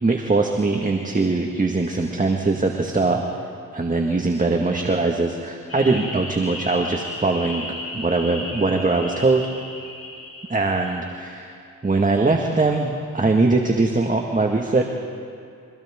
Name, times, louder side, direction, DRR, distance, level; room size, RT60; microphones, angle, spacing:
voice 1, 0.0-3.2 3.7-7.7 7.9-9.4 10.5-11.6 11.8-14.9, right 3 dB, 25° right, 2 dB, 1.7 m, -21 dB
sound 1, 5.7-10.9, left 2 dB, 50° left, 7.0 m, -35 dB
29.0 x 24.5 x 3.7 m, 2.4 s
cardioid pair, 55°, 32 cm